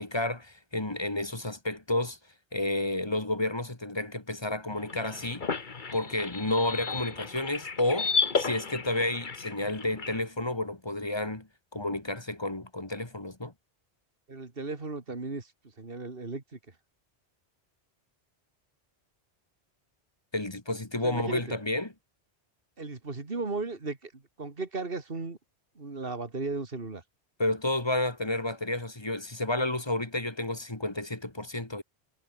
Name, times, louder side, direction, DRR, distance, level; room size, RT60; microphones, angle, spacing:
voice 1, 0.0-2.2 2.5-5.4 5.9-11.5 11.7-13.5 20.3-21.9 27.4-31.8, left 2 dB, 25° left, 2.1 m, -31 dB
sound 1, 4.7-10.2, left 4 dB, 50° left, 1.6 m, -33 dB
voice 2, 14.3-15.5 15.8-16.6 21.0-21.4 22.8-25.4 25.8-27.0, right 3 dB, 60° right, 2.8 m, -36 dB
omnidirectional pair, 1.1 m